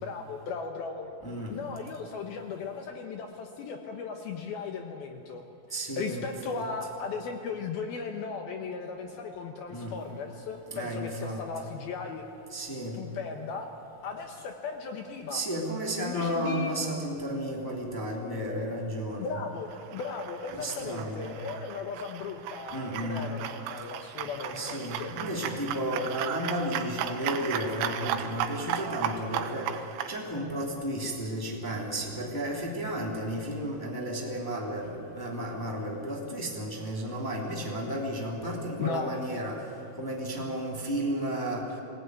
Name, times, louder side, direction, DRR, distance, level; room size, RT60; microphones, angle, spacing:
voice 1, 0.0-1.1 1.5-5.4 5.7-12.2 12.7-13.7 14.0-15.4 16.0-16.7 19.2-25.1 38.8-39.1, left 5 dB, 75° left, 4 dB, 2.3 m, -37 dB
voice 2, 1.2-1.6 5.7-6.6 9.7-10.0 10.7-11.4 12.5-13.0 15.3-19.3 20.5-21.3 22.7-23.3 24.5-29.7 30.1-39.6 40.0-41.7, equal, 15° left, -2 dB, 0.7 m, -33 dB
sound 1, 19.7-30.2, right 10 dB, 75° right, 3.2 m, -35 dB
20.5 x 18.0 x 9.4 m, 2.7 s
omnidirectional pair, 5.8 m